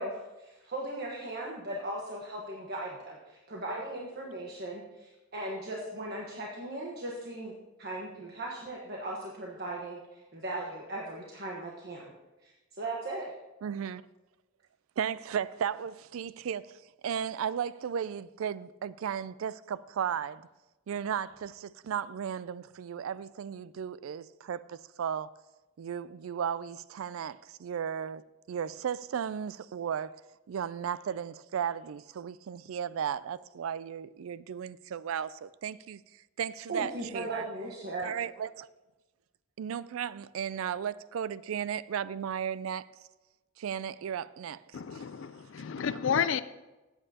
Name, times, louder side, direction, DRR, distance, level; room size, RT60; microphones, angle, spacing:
voice 1, 0.0-7.5 7.8-12.1 12.4-13.4 36.7-38.1, right 1 dB, 50° right, 1.2 m, -38 dB
voice 2, 13.6-14.0 15.0-20.5 20.9-25.3 25.8-28.2 28.5-30.2 30.5-36.0 36.4-37.4 38.0-38.7 39.6-42.9 43.6-44.6, right 8 dB, 75° right, 0.3 m, -35 dB
voice 3, 44.7-46.4, left 7 dB, 65° left, 0.4 m, -31 dB
14.0 x 8.9 x 2.8 m
head